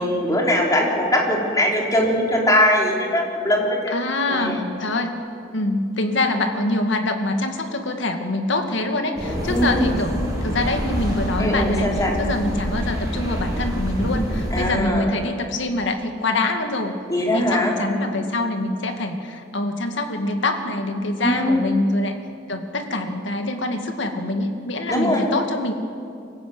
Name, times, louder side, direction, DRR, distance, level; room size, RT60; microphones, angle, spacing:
voice 1, 0.0-3.9 4.3-4.6 9.5-9.8 11.4-12.1 14.5-15.1 17.1-17.7 21.2-21.7 24.9-25.2, left 1 dB, 20° left, -1 dB, 3.8 m, -21 dB
voice 2, 3.9-5.2 5.5-17.0 17.3-22.2 22.5-25.7, left 2 dB, 65° left, 5 dB, 2.2 m, -25 dB
sound 1, 9.2-14.7, equal, 20° right, 7.8 m, -26 dB
24.5 x 15.0 x 9.4 m, 2.4 s
head